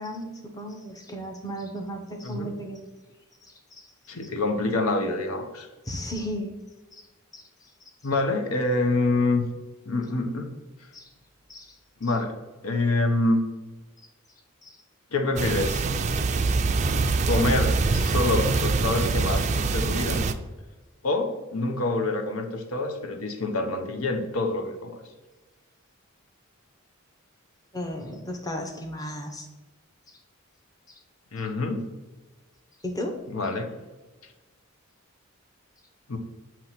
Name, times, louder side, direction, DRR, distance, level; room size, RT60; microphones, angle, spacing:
voice 1, 0.0-2.9 3.5-3.9 5.9-6.6 6.9-7.0 7.3-7.5 10.9-11.1 11.5-11.8 14.6-14.8 27.7-29.5 32.8-33.2, equal, 15° left, 3 dB, 0.7 m, -35 dB
voice 2, 4.1-5.7 8.0-9.4 9.8-10.5 12.0-12.4 12.6-13.4 15.1-15.9 17.2-20.3 21.0-25.0 31.3-31.9 33.3-33.7 36.1-36.2, left 2 dB, 80° left, 5 dB, 0.9 m, -26 dB
sound 1, 15.4-20.3, right 3 dB, 35° right, 0.4 m, -24 dB
7.6 x 3.0 x 5.8 m, 1.2 s
head